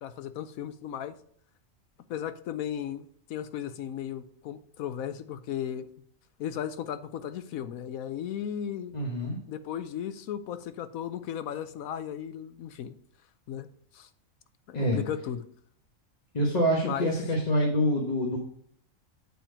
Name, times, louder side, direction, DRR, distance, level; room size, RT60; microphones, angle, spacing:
voice 1, 0.0-1.1 2.1-5.9 6.4-8.9 9.5-12.9 13.5-13.7 13.9-14.1 14.7-15.4 16.8-17.1, left 9 dB, 85° left, 11 dB, 1.1 m, -35 dB
voice 2, 8.9-9.4 14.7-15.0 16.3-18.4, equal, 30° left, -2 dB, 1.3 m, -26 dB
8.1 x 4.4 x 5.0 m, 0.62 s
omnidirectional pair, 1.4 m